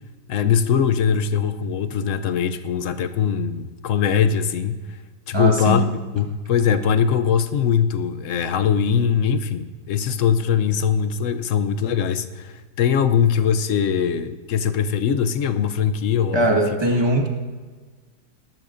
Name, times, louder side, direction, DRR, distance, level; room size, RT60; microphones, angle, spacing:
voice 1, 0.3-4.8 5.3-5.9 6.1-16.6, left 7 dB, 65° left, 11 dB, 0.9 m, -21 dB
voice 2, 5.3-5.9 16.3-17.3, right 1 dB, 15° right, 1 dB, 1.5 m, -20 dB
20.0 x 12.5 x 2.6 m, 1.4 s
omnidirectional pair, 1.7 m